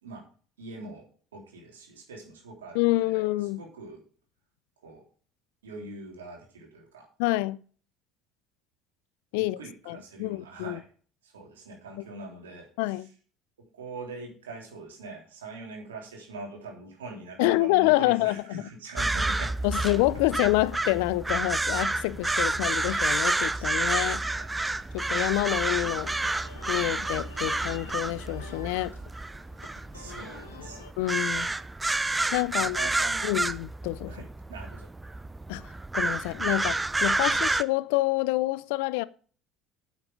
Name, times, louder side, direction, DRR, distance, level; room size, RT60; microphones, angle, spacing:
voice 1, 0.6-1.1 1.3-4.0 4.8-5.0 5.6-7.1 9.4-10.9 11.2-13.1 13.7-20.1 22.3-22.7 23.5-24.6 29.9-30.8 31.2-31.6 32.5-33.4 34.1-34.9 37.3-37.4, right 3 dB, 85° right, 3.2 m, -43 dB
voice 2, 2.7-3.6 7.2-7.6 9.3-9.6 9.9-10.8 12.8-13.1 17.4-18.6 19.6-24.2 24.9-26.1 26.7-28.9 31.0-31.5 32.3-32.8 33.2-34.2 35.5-35.6 35.9-39.0, left 20 dB, 70° left, 0.4 m, -27 dB
sound 1, 19.0-37.6, right 2 dB, 15° right, 0.6 m, -29 dB
sound 2, 24.7-30.9, left 4 dB, 90° left, 1.8 m, -47 dB
9.2 x 7.3 x 5.1 m
hypercardioid pair, 65°, 0 cm